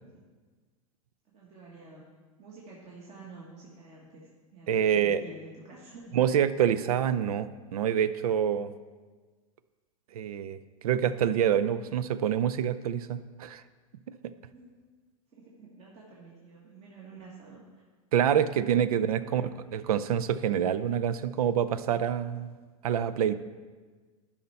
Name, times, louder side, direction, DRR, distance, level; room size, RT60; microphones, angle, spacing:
voice 1, 1.3-2.1 2.4-6.2 14.5-14.8 15.3-17.8 19.2-19.7, right 3 dB, 35° right, -4 dB, 1.7 m, -49 dB
voice 2, 4.7-5.2 6.1-8.7 10.1-10.6 10.8-13.6 14.2-14.3 18.1-19.4 19.7-22.5 22.8-23.3, right 9 dB, 80° right, 15 dB, 0.5 m, -26 dB
11.0 x 5.7 x 4.3 m, 1.4 s
hypercardioid pair, 115°, 19 cm